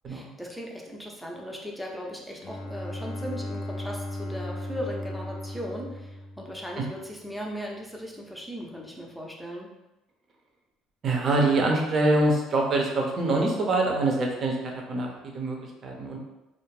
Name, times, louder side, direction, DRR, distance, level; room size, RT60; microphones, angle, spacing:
voice 1, 0.1-9.7, equal, 5° left, -1 dB, 0.6 m, -38 dB
Bowed string instrument, 2.4-7.1, left 1 dB, 50° left, 0.4 m, -36 dB
voice 2, 11.0-16.2, right 2 dB, 45° right, 0 dB, 0.6 m, -25 dB
2.4 x 2.0 x 3.1 m, 0.99 s
hypercardioid pair, 70°, 0 cm